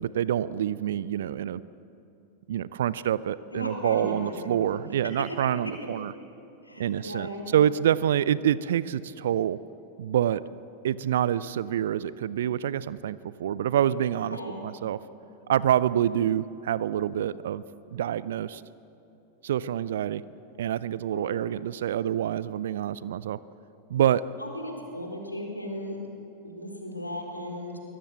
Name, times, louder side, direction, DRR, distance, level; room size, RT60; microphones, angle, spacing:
voice 1, 0.0-1.6 2.5-6.1 6.8-9.6 10.0-10.4 10.8-14.4 14.6-15.0 15.5-17.6 17.9-18.6 19.4-20.2 20.6-23.4 23.9-24.2, right 10 dB, 60° right, 18 dB, 0.5 m, -26 dB
voice 2, 3.5-4.5 6.6-7.5 14.3-14.6 21.1-21.3 24.4-26.0 26.4-27.8, left 1 dB, 85° left, 1 dB, 4.1 m, -36 dB
23.5 x 18.0 x 8.1 m, 2.9 s
figure-of-eight pair, 90°, 0 cm